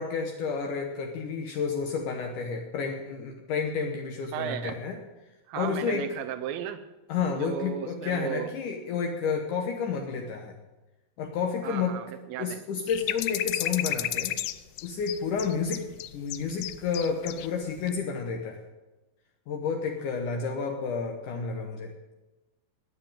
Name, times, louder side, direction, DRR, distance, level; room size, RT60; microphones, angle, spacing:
voice 1, 0.0-5.0 5.6-6.0 7.1-10.5 11.2-12.0 12.4-14.4 14.8-18.6 19.5-21.9, left 5 dB, 70° left, 2 dB, 2.6 m, -30 dB
voice 2, 4.3-4.8 5.5-6.8 7.3-8.5 11.6-12.6, right 10 dB, 85° right, 7 dB, 2.6 m, -35 dB
sound 1, 12.9-17.5 17.8-17.9, left 14 dB, 85° left, 2.4 m, -32 dB
13.0 x 9.8 x 8.9 m, 1.1 s
omnidirectional pair, 4.0 m